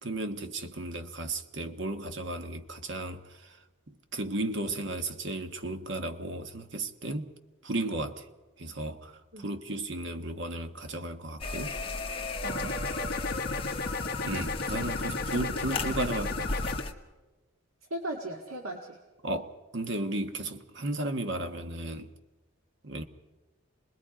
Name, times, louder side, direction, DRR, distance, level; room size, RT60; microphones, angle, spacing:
voice 1, 0.0-3.6 3.9-7.3 7.6-8.3 8.6-11.8 14.2-16.7 19.2-22.1 22.8-23.0, right 2 dB, 55° right, 1.3 m, -34 dB
sound 1, 11.4-16.9, left 3 dB, 25° left, 1.2 m, -36 dB
sound 2, 12.4-16.8, left 3 dB, 45° left, 1.3 m, -33 dB
voice 2, 12.4-12.8 17.9-19.0, right 1 dB, 75° right, 1.9 m, -37 dB
27.5 x 20.5 x 5.0 m
head